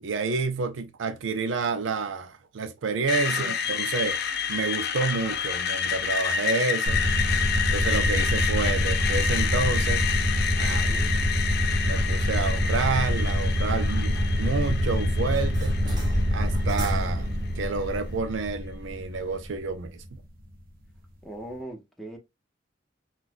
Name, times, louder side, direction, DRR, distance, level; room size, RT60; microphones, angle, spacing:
voice 1, 0.0-7.0 7.7-10.1 10.6-11.3 11.8-15.8 16.3-17.3 17.6-20.2, right 4 dB, 75° right, 0.5 m, -29 dB
Screech, 3.1-17.0, left 7 dB, 55° left, 0.5 m, -29 dB
sound 1, 6.9-20.1, equal, 50° right, 0.9 m, -26 dB
sound 2, 10.5-18.2, equal, 20° right, 1.2 m, -39 dB
voice 2, 10.7-11.2 21.2-22.2, right 1 dB, ahead, 0.8 m, -40 dB
3.9 x 2.4 x 2.5 m
head